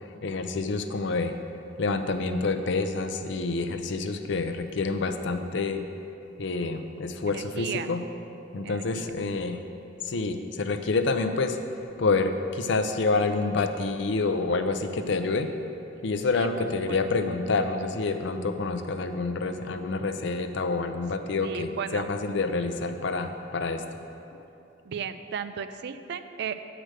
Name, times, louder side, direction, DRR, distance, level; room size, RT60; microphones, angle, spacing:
voice 1, 0.2-1.4 1.8-5.8 6.4-8.0 8.5-9.6 10.0-15.5 16.0-23.8 24.3-24.4, left 3 dB, 65° left, 7 dB, 0.5 m, -28 dB
voice 2, 7.3-7.9 8.6-9.1 16.3-17.0 21.4-22.1 24.8-26.6, right 7 dB, 60° right, 10 dB, 0.4 m, -35 dB
7.7 x 5.0 x 6.5 m, 2.8 s
head